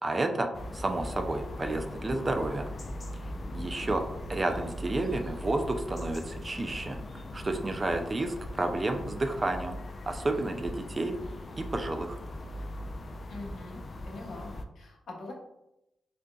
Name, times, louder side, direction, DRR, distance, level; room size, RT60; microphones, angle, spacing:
voice 1, 0.0-0.5 0.7-2.7 3.5-4.0 4.3-7.0 7.3-9.8 10.1-11.1 11.6-12.2, right 2 dB, 35° right, 5 dB, 0.4 m, -31 dB
sound 1, 0.5-14.6, left 1 dB, 45° left, 0.3 m, -40 dB
voice 2, 3.6-4.0 13.3-13.8 14.1-15.3, left 2 dB, 75° left, -2 dB, 0.9 m, -44 dB
3.7 x 2.5 x 2.3 m, 0.88 s
cardioid pair, 60°, 0 cm